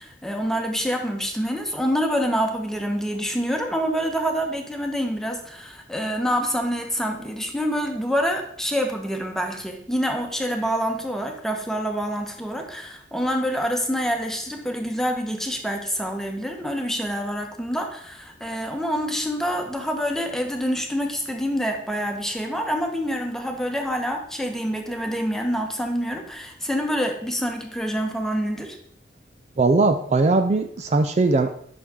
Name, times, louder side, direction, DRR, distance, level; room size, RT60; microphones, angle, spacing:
voice 1, 0.0-28.8, equal, 5° left, 3 dB, 1.1 m, -26 dB
voice 2, 29.6-31.5, right 3 dB, 40° right, 8 dB, 0.4 m, -19 dB
10.0 x 6.0 x 3.7 m, 0.66 s
head